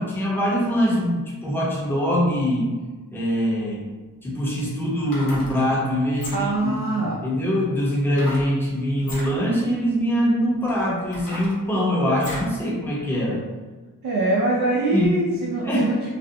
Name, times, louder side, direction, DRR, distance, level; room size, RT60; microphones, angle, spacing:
voice 1, 0.0-2.8 3.1-3.9 4.2-6.8 7.2-13.4 14.7-15.1 15.6-15.9, equal, 5° left, -6 dB, 0.8 m, -23 dB
sound 1, 4.9-5.5 6.1-6.6 8.1-8.5 9.0-9.3 10.0-10.1 10.7-12.5 13.0-13.1, left 1 dB, 65° left, 0.9 m, -36 dB
voice 2, 6.3-7.2 14.0-16.1, right 2 dB, 80° right, -4 dB, 0.5 m, -23 dB
2.4 x 2.1 x 2.7 m, 1.3 s
cardioid pair, 50°, 35 cm